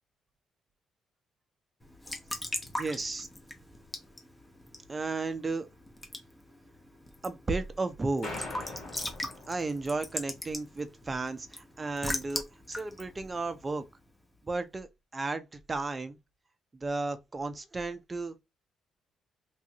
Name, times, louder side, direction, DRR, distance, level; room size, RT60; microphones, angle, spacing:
Raindrop / Drip / Trickle dribble, 1.8-14.3, left 1 dB, 15° left, 0.8 m, -41 dB
voice 1, 2.8-3.3 4.9-5.7 7.2-8.5 9.5-13.8 14.4-16.2 16.8-18.4, right 3 dB, 25° right, 0.5 m, -34 dB
sound 1, 8.2-10.2, left 2 dB, 65° left, 1.7 m, -42 dB
3.1 x 2.4 x 2.8 m
cardioid pair, 90°, 0 cm